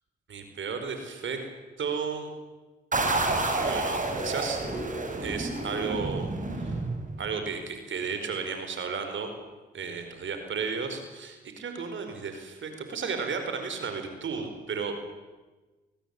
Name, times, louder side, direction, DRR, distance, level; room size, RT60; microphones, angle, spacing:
voice 1, 0.3-1.4 1.8-2.3 3.4-4.6 5.2-6.3 6.6-6.8 7.2-9.3 9.7-15.0, right 5 dB, 65° right, 6 dB, 4.7 m, -33 dB
sound 1, 2.9-7.4, right 2 dB, 40° right, 6.2 m, -29 dB
24.0 x 19.5 x 8.4 m, 1.2 s
supercardioid pair, 50°, 21 cm